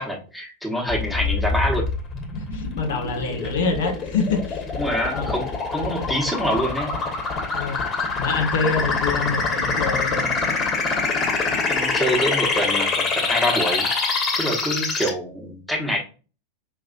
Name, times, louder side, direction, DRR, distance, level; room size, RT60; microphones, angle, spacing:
voice 1, 0.0-1.8 4.8-7.0 11.7-13.9 14.4-16.0, equal, ahead, 0 dB, 1.2 m, -26 dB
sound 1, 0.9-15.1, left 4 dB, 25° left, 1.2 m, -25 dB
voice 2, 2.3-4.6 5.1-5.3 7.5-7.9 8.2-10.6 11.5-11.6, left 4 dB, 60° left, 4 dB, 0.7 m, -26 dB
5.3 x 2.9 x 2.5 m, 0.34 s
figure-of-eight pair, 90°, 0 cm